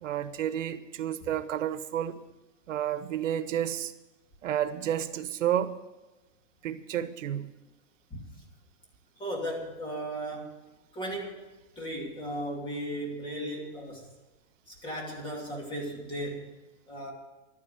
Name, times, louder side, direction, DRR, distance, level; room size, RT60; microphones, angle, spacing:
voice 1, 0.0-2.2 2.7-3.9 4.4-5.8 6.6-7.5, right 10 dB, 85° right, 1.0 m, -31 dB
voice 2, 9.2-10.5 10.9-11.4 11.8-14.1 14.7-16.5 16.9-17.1, right 1 dB, 15° left, 2.7 m, -36 dB
12.0 x 9.8 x 7.9 m
supercardioid pair, 165°, 37 cm